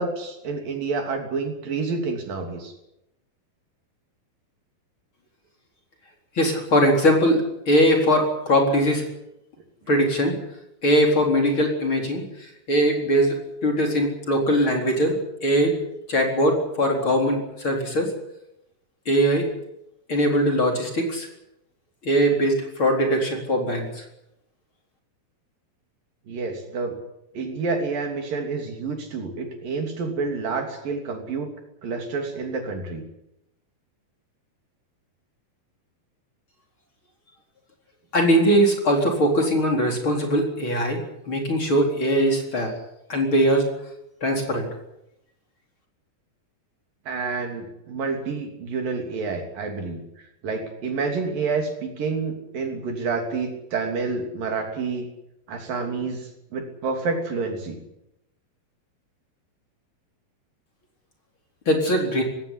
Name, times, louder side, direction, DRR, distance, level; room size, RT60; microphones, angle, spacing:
voice 1, 0.0-2.7 26.3-27.0 27.3-31.5 31.8-33.0 47.1-50.0 50.4-55.1 55.5-57.8, right 4 dB, 70° right, 4 dB, 4.7 m, -28 dB
voice 2, 6.4-9.0 9.9-10.3 10.8-12.2 12.7-13.4 13.6-15.2 15.4-15.8 16.1-18.1 19.1-19.4 20.1-21.3 22.0-24.0 38.1-41.0 41.3-42.7 43.1-43.6 44.2-44.7 61.7-62.2, equal, 35° left, 2 dB, 4.6 m, -21 dB
19.5 x 17.0 x 9.9 m, 0.85 s
omnidirectional pair, 4.2 m